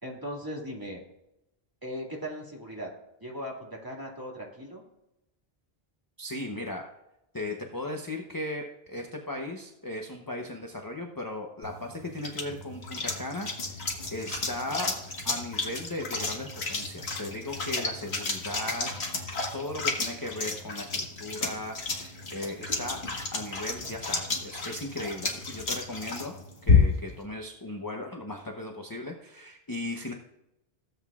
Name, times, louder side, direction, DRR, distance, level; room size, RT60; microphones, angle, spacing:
voice 1, 0.0-1.0 1.8-2.9 3.2-4.8, equal, 20° right, -2 dB, 2.2 m, -38 dB
voice 2, 6.2-6.8 7.3-13.5 13.7-13.8 14.1-14.9 15.2-23.0 23.3-26.3 26.6-30.1, left 1 dB, 20° left, 1 dB, 0.8 m, -37 dB
sound 1, 11.6-27.2, left 4 dB, 90° left, 1.8 m, -31 dB
16.0 x 8.0 x 2.4 m, 0.88 s
omnidirectional pair, 1.0 m